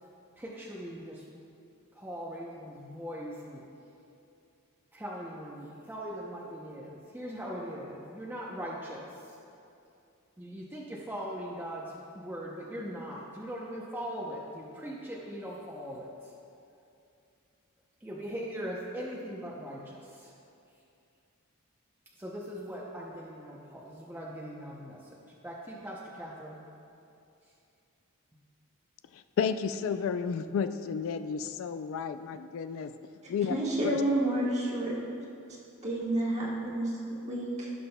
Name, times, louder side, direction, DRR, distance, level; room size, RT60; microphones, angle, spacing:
voice 1, 0.4-1.2 1.9-3.6 4.9-9.4 10.4-16.3 18.0-20.3 22.2-26.6, equal, 10° right, -5 dB, 0.6 m, -40 dB
voice 2, 29.4-32.9 33.3-33.6 33.8-34.0, left 6 dB, 65° left, 10 dB, 0.3 m, -31 dB
voice 3, 33.5-34.9 35.8-37.7, right 1 dB, 30° right, -4 dB, 1.5 m, -30 dB
16.5 x 6.0 x 2.2 m, 2.6 s
head